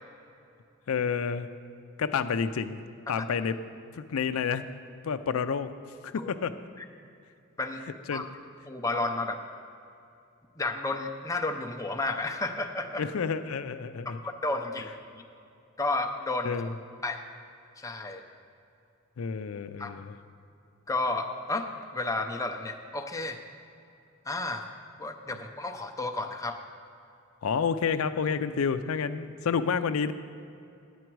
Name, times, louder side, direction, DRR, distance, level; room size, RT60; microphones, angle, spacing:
voice 1, 0.9-1.5 2.0-2.8 3.1-3.6 3.9-4.6 5.0-5.7 6.0-6.6 8.1-8.3 13.0-14.2 16.4-16.7 19.2-20.2 27.4-30.1, left 6 dB, 80° left, 10 dB, 0.4 m, -29 dB
voice 2, 8.7-9.4 10.6-13.1 14.1-15.2 15.8-16.6 17.0-17.2 17.8-18.2 19.8-19.9 20.9-23.4 24.3-24.7 25.0-26.6, left 2 dB, 15° left, 4 dB, 0.6 m, -32 dB
10.0 x 8.7 x 4.6 m, 2.6 s
head